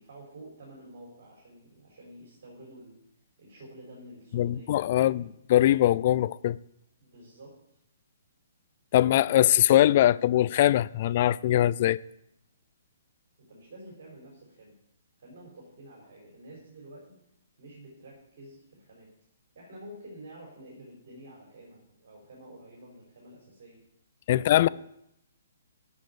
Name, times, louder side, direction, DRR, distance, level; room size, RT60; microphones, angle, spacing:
voice 1, 0.0-3.0 3.4-5.3 7.0-7.5 13.4-14.7 15.2-17.2 17.6-19.1 19.5-23.8 24.3-24.7, right 1 dB, 45° right, 4.3 m, -49 dB
voice 2, 4.3-5.2 5.5-6.6 8.9-12.0 24.3-24.7, left 13 dB, 40° left, 0.3 m, -22 dB
9.5 x 6.4 x 8.5 m
figure-of-eight pair, 125°, 0 cm